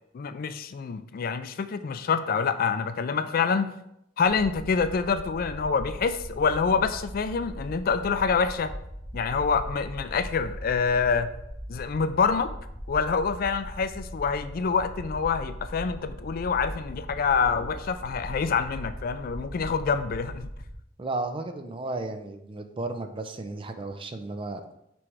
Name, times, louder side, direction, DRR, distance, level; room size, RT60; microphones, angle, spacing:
voice 1, 0.1-3.7 4.2-8.7 9.1-11.3 11.7-12.5 12.9-20.5, left 5 dB, 50° left, 11 dB, 0.4 m, -26 dB
sound 1, 4.2-20.8, equal, 20° left, 0.9 m, -40 dB
voice 2, 21.0-24.6, right 2 dB, 30° right, 7 dB, 0.5 m, -34 dB
6.1 x 3.3 x 4.7 m, 0.79 s
head